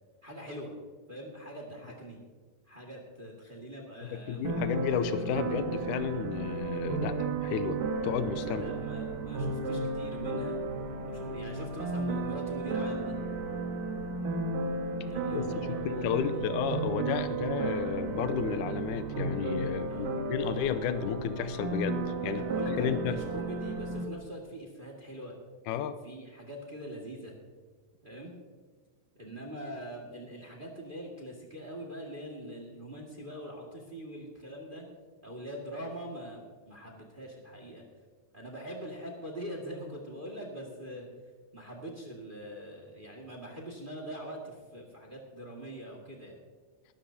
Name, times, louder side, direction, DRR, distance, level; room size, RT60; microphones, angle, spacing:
voice 1, 0.2-0.7 1.1-2.2 2.6-4.8 8.4-10.6 11.0-13.2 15.1-16.6 19.9-20.6 22.2-25.3 26.0-27.3 28.0-28.3 29.1-34.8 35.2-37.8 38.3-41.1 41.5-46.4, equal, 25° right, 0 dB, 1.1 m, -43 dB
voice 2, 4.1-8.6 15.3-15.4 15.9-23.2 25.7-26.0, left 8 dB, 80° left, 10 dB, 1.9 m, -32 dB
sound 1, 4.4-24.0, right 3 dB, 65° right, 3.1 m, -33 dB
20.5 x 13.0 x 2.8 m, 1.4 s
omnidirectional pair, 4.3 m